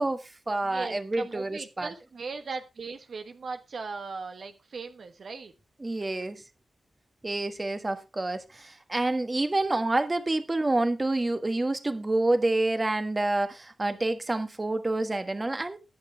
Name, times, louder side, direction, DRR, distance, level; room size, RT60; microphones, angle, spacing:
voice 1, 0.0-1.9 5.8-6.4 7.2-15.8, right 2 dB, 30° right, 1.5 m, -28 dB
voice 2, 0.6-5.5, right 4 dB, 70° right, 1.2 m, -38 dB
20.0 x 6.7 x 3.4 m
cardioid pair, 65°, 0 cm